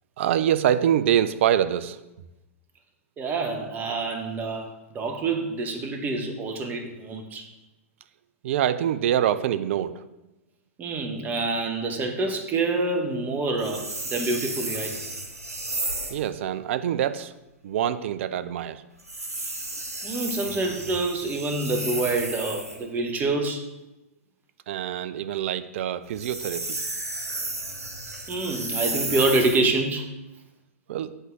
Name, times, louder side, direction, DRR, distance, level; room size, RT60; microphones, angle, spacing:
voice 1, 0.2-2.0 8.4-10.0 16.1-17.3 17.6-18.8 24.7-26.8 30.9-31.1, right 10 dB, 55° right, 0.5 m, -25 dB
voice 2, 3.2-7.5 10.8-15.0 20.0-23.6 28.3-30.1, right 3 dB, 20° right, 1.0 m, -27 dB
sound 1, 13.6-16.2 19.0-22.8 26.0-29.7, right 2 dB, 85° right, 1.3 m, -33 dB
8.0 x 3.7 x 5.9 m
figure-of-eight pair, 110°, 8 cm